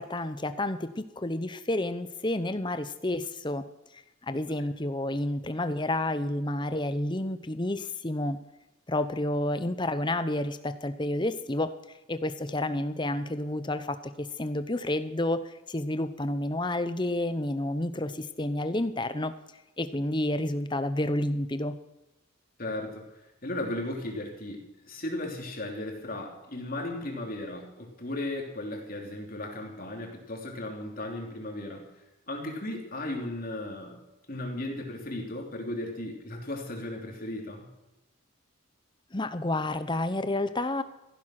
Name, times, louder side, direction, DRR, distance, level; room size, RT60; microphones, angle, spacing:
voice 1, 0.0-3.6 4.2-8.4 8.9-11.8 12.1-19.3 19.8-21.8 39.1-40.8, left 1 dB, 20° left, 11 dB, 0.8 m, -30 dB
voice 2, 22.6-23.0 23.4-31.8 32.3-34.0 34.3-37.7, left 1 dB, 40° left, 1 dB, 3.2 m, -36 dB
15.5 x 11.0 x 5.9 m, 1.0 s
head